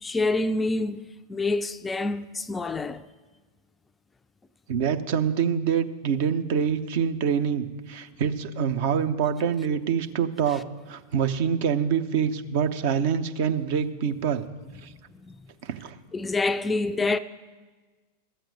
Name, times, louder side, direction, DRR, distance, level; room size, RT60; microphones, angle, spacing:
voice 1, 0.0-3.1 10.5-10.6 15.2-15.4 16.1-17.2, left 3 dB, 15° left, 0.4 m, -27 dB
voice 2, 4.7-10.6 10.9-14.5 14.8-14.9 15.6-15.9, right 7 dB, 50° right, 0.7 m, -25 dB
13.5 x 7.6 x 6.7 m
figure-of-eight pair, 90°, 0 cm